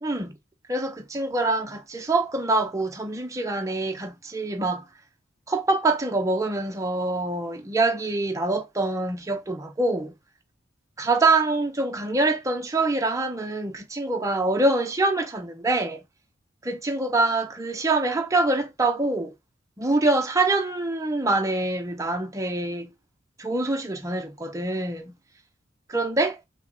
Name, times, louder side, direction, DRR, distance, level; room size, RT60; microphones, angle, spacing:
voice 1, 0.0-0.4 0.7-4.9 5.5-10.1 11.0-16.0 16.6-19.3 19.8-22.9 23.4-25.2 25.9-26.4, right 2 dB, 15° right, 0.7 m, -25 dB
5.6 x 2.2 x 4.1 m
head